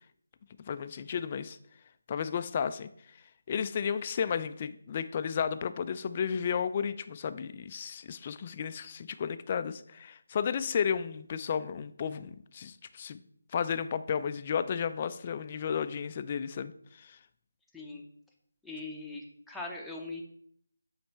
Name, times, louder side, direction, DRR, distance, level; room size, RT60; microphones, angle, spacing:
voice 1, 0.6-1.6 2.1-2.9 3.5-13.2 13.5-16.7 17.0-17.2, left 7 dB, 30° left, 12 dB, 0.3 m, -33 dB
voice 2, 17.7-18.0 18.6-20.2, left 3 dB, ahead, -4 dB, 0.7 m, -41 dB
8.5 x 3.2 x 4.5 m, 0.66 s
figure-of-eight pair, 160°, 0 cm